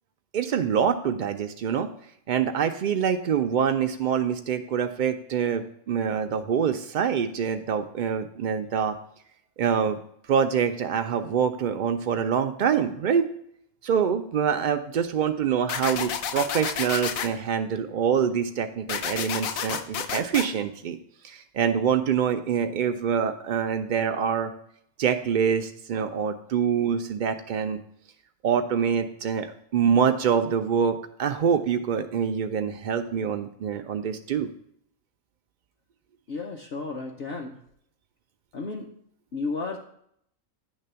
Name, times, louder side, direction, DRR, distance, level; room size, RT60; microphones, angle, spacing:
voice 1, 0.3-1.9 2.3-9.0 9.6-10.0 10.3-13.3 13.8-21.0 21.2-24.5 25.0-27.8 28.4-34.5, right 7 dB, 90° right, 7 dB, 0.4 m, -25 dB
sound 1, 15.7-17.3 18.9-20.5, left 8 dB, 85° left, 1.1 m, -30 dB
voice 2, 36.3-37.6 38.5-38.9 39.3-39.9, left 3 dB, 55° left, 0 dB, 0.8 m, -33 dB
9.9 x 3.4 x 6.7 m, 0.70 s
omnidirectional pair, 1.4 m